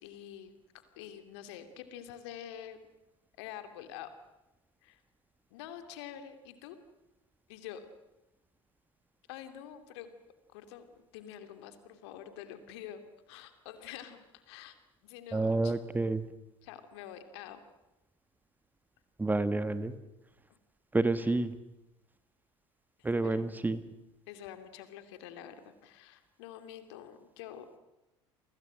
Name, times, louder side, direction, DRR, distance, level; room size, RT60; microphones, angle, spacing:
voice 1, 0.0-2.8 3.4-4.1 4.8-5.0 5.5-6.8 7.5-7.9 9.3-10.1 10.5-10.9 11.1-13.0 13.3-14.7 15.0-15.7 16.6-17.6 21.2-21.3 23.3-23.6 24.3-27.7, left 10 dB, 60° left, 8 dB, 2.8 m, -47 dB
voice 2, 15.3-16.2 19.2-19.9 20.9-21.5 23.0-23.8, right 2 dB, 10° right, 12 dB, 1.4 m, -29 dB
29.5 x 24.0 x 6.4 m, 0.96 s
figure-of-eight pair, 70°, 16 cm